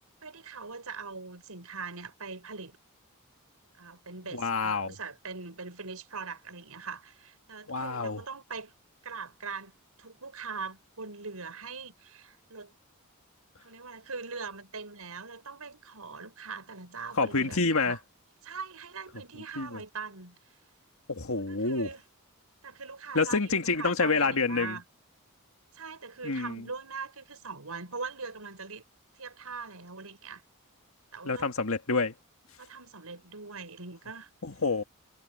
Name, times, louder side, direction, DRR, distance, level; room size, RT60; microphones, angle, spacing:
voice 1, 0.2-2.8 3.8-8.7 9.0-9.7 10.0-12.8 13.6-18.0 18.4-20.4 21.5-22.0 22.6-24.8 25.7-28.8 29.1-30.4 31.1-31.5 32.6-34.3, right 4 dB, 80° right, 5.5 m, -41 dB
voice 2, 4.3-5.0 7.7-8.2 17.2-18.0 19.6-19.8 21.1-21.9 23.1-24.8 26.2-26.6 31.2-32.1 34.4-34.8, left 3 dB, 70° left, 1.9 m, -28 dB
head